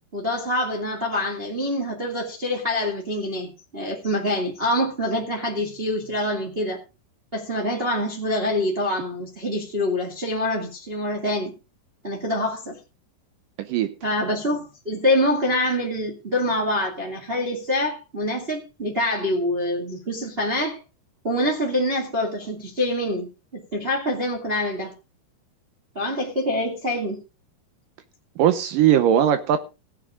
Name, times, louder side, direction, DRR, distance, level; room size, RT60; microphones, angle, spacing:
voice 1, 0.1-6.8 7.3-11.5 12.0-12.8 14.0-20.8 21.2-23.3 23.5-24.9 25.9-27.2, left 1 dB, 20° right, 1.6 m, -25 dB
voice 2, 13.6-13.9 28.4-29.6, right 10 dB, 75° right, 2.1 m, -19 dB
16.5 x 9.4 x 3.7 m
omnidirectional pair, 4.7 m